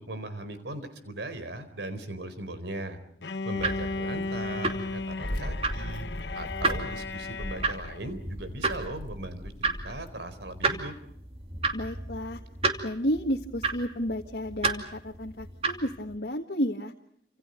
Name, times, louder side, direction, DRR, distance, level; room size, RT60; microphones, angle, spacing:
voice 1, 0.0-3.0 3.4-6.1 6.3-10.9, right 1 dB, 85° right, 11 dB, 4.2 m, -38 dB
Bowed string instrument, 3.2-8.1, left 3 dB, 80° left, 1.0 m, -35 dB
sound 1, 3.5-16.2, right 3 dB, 35° right, 2.7 m, -33 dB
sound 2, 5.2-10.1, equal, 30° left, 2.5 m, -39 dB
voice 2, 11.7-12.4 12.8-16.9, equal, 65° left, 0 dB, 1.8 m, -31 dB
29.5 x 27.0 x 5.3 m, 0.70 s
head